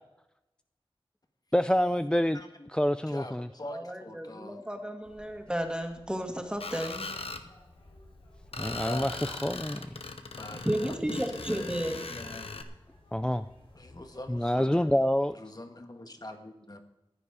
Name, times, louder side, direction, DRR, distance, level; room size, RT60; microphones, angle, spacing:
voice 1, 1.5-2.4 2.7-3.5 8.6-9.8 13.1-13.5 14.3-15.4, equal, 10° left, 11 dB, 0.4 m, -27 dB
voice 2, 2.3-2.7 3.1-4.6 8.6-9.2 10.4-12.5 13.7-14.9 15.3-16.8, left 1 dB, 45° left, 6 dB, 1.5 m, -44 dB
voice 3, 3.7-7.1 10.5-12.0, right 1 dB, 10° right, 3 dB, 2.0 m, -33 dB
sound 1, 5.0-14.5, left 2 dB, 75° left, 3.7 m, -55 dB
Screech, 6.6-7.4 8.5-12.6, left 3 dB, 90° left, 0.9 m, -40 dB
15.0 x 9.9 x 4.9 m, 0.94 s
wide cardioid pair, 55°, 10 cm